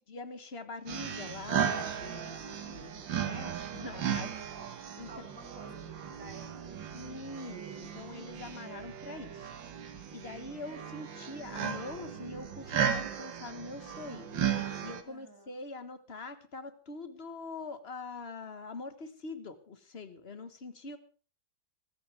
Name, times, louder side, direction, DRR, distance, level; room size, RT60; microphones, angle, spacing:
voice 1, 0.1-4.3 5.0-5.1 6.9-9.5 10.1-14.3 14.8-21.0, left 3 dB, 35° left, 10 dB, 1.6 m, -44 dB
sound 1, 0.9-15.0, right 8 dB, 90° right, 2.1 m, -36 dB
voice 2, 4.1-4.5 5.1-7.4 15.0-15.6, right 3 dB, 45° right, 2 dB, 4.2 m, -53 dB
22.5 x 14.5 x 3.6 m, 0.38 s
omnidirectional pair, 2.0 m